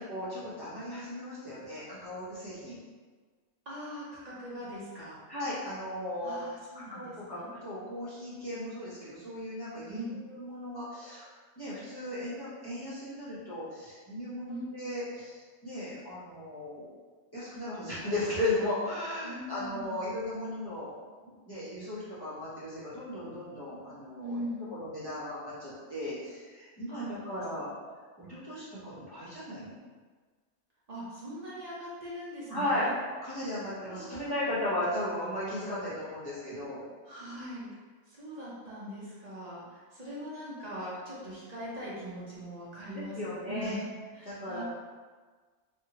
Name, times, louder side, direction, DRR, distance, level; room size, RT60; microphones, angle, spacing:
voice 1, 0.0-2.8 5.3-6.4 6.7-11.3 11.6-16.9 17.3-20.9 21.2-24.4 24.7-27.7 28.2-29.8 32.5-32.9 33.2-36.8 42.9-43.8 44.2-44.6, left 1 dB, 20° left, -11 dB, 0.6 m, -36 dB
voice 2, 3.7-5.2 6.2-7.5 9.9-10.2 14.5-14.7 19.2-20.2 24.2-24.7 26.9-27.7 30.9-32.9 33.9-34.4 37.1-37.7 38.1-44.6, equal, 60° right, -8 dB, 0.4 m, -41 dB
2.8 x 2.5 x 2.8 m, 1.4 s
omnidirectional pair, 1.6 m